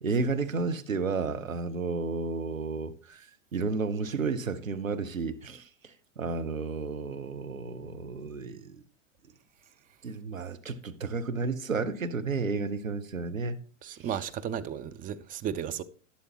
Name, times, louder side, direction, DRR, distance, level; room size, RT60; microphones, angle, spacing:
voice 1, 0.0-3.3 3.5-8.8 10.0-13.6, right 4 dB, 85° right, 1.0 m, -32 dB
voice 2, 13.8-15.8, right 9 dB, 20° right, 0.6 m, -34 dB
11.5 x 11.0 x 3.0 m
figure-of-eight pair, 95°, 39 cm